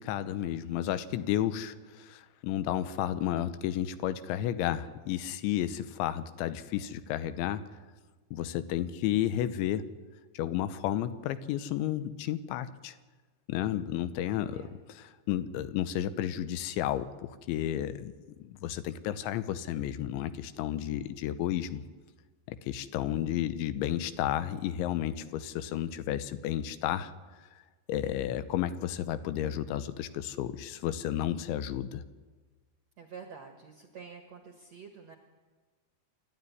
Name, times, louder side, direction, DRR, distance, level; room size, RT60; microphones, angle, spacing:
voice 1, 0.0-7.6 8.3-9.8 10.3-12.9 13.5-18.1 18.4-21.8 22.5-27.1 27.9-32.0, left 11 dB, 85° left, 13 dB, 3.2 m, -32 dB
voice 2, 14.4-14.7 33.0-35.1, right 6 dB, 65° right, 4 dB, 1.7 m, -48 dB
27.5 x 12.0 x 9.7 m, 1.3 s
omnidirectional pair, 5.3 m